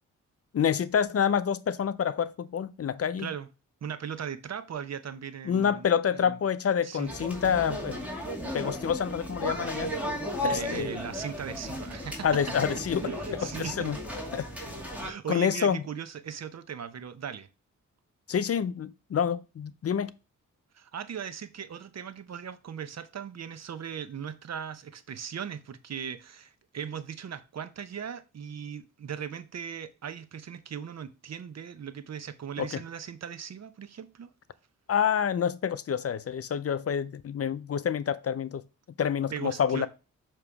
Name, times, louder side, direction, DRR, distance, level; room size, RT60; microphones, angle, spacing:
voice 1, 0.5-3.3 5.5-8.0 8.5-9.9 10.4-10.9 12.2-13.0 13.6-14.0 14.3-14.7 15.3-15.8 18.3-20.1 32.6-32.7 34.9-38.6 39.0-39.9, left 8 dB, 50° left, 0.5 m, -27 dB
voice 2, 3.8-6.4 6.8-7.1 10.4-12.3 13.0-14.0 15.0-17.5 20.7-34.3 39.3-39.9, right 8 dB, 55° right, 0.7 m, -38 dB
sound 1, 7.0-15.1, equal, 5° right, 2.2 m, -35 dB
6.9 x 3.0 x 4.8 m
cardioid pair, 55°, 32 cm